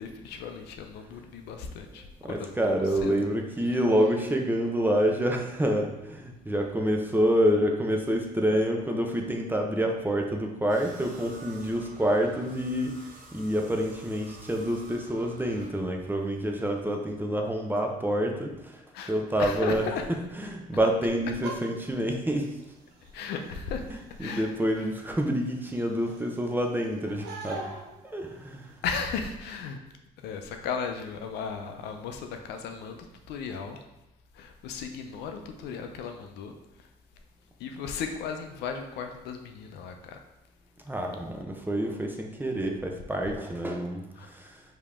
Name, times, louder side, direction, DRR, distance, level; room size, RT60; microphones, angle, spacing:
voice 1, 0.0-2.6 2.9-3.3 3.6-3.7 18.9-20.1 23.1-23.9 24.2-24.9 28.8-29.8 30.2-33.8 34.3-36.9 37.6-40.2 44.2-44.3, left 6 dB, 80° left, 5 dB, 0.5 m, -36 dB
voice 2, 2.2-18.5 19.1-19.8 20.5-22.5 24.2-27.6 28.0-28.7 40.9-44.0 44.3-44.6, equal, 10° right, 2 dB, 0.7 m, -27 dB
sound 1, 10.7-15.7, right 2 dB, 50° right, 1.2 m, -49 dB
sound 2, 21.3-28.8, right 2 dB, 85° right, 0.7 m, -45 dB
4.7 x 2.9 x 3.5 m, 0.93 s
supercardioid pair, 80°, 17 cm